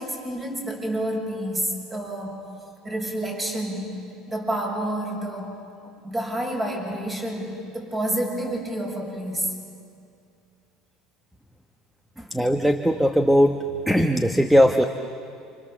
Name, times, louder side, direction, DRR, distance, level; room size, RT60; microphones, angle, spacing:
voice 1, 0.0-2.4 2.8-4.0 4.3-5.5 5.8-9.5 12.2-12.3, right 1 dB, 20° right, 0 dB, 7.3 m, -29 dB
voice 2, 12.3-13.6 13.9-14.8, equal, 5° right, 6 dB, 1.2 m, -19 dB
29.5 x 27.0 x 7.5 m, 2.5 s
supercardioid pair, 115°, 0 cm